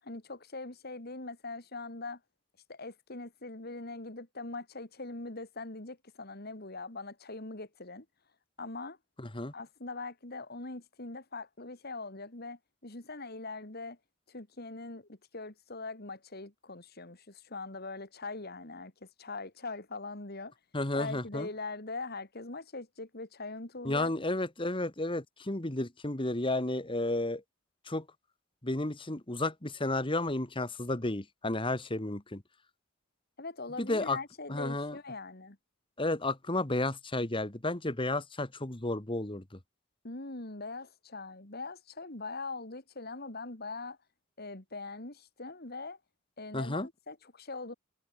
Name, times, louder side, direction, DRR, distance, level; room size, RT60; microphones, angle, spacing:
voice 1, 0.0-2.2 2.7-8.1 8.6-9.0 9.5-14.0 14.3-20.5 20.9-24.1 33.4-35.6 40.0-44.0 44.4-46.0 46.4-47.7, left 3 dB, 50° left, 2.7 m, -42 dB
voice 2, 9.2-9.5 20.7-21.5 23.8-27.4 27.9-28.1 28.6-32.4 33.8-34.2 34.5-35.0 36.0-39.4 46.5-46.9, left 2 dB, 25° left, 1.8 m, -32 dB
head